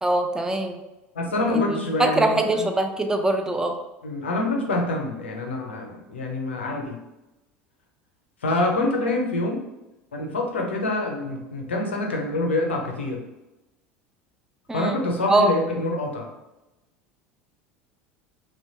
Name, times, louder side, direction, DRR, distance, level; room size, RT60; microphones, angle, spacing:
voice 1, 0.0-0.8 1.5-1.6 2.0-3.7 14.7-15.0 15.3-15.5, right 2 dB, 10° right, 5 dB, 0.4 m, -22 dB
voice 2, 1.1-2.7 4.0-7.0 8.4-9.6 10.1-13.2 14.7-16.3, left 2 dB, 85° left, 1 dB, 0.5 m, -26 dB
2.9 x 2.2 x 2.7 m, 1.0 s
hypercardioid pair, 75°, 6 cm